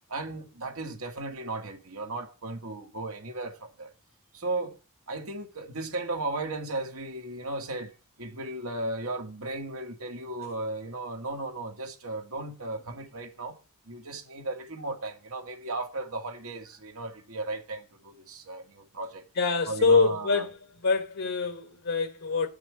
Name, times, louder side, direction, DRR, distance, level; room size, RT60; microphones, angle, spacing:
voice 1, 0.1-3.9 4.3-4.8 5.1-13.6 13.9-19.2 19.7-20.4, right 2 dB, 70° right, 2.0 m, -35 dB
voice 2, 19.4-20.5 20.8-22.5, left 4 dB, 65° left, 1.4 m, -25 dB
9.4 x 6.2 x 7.6 m
head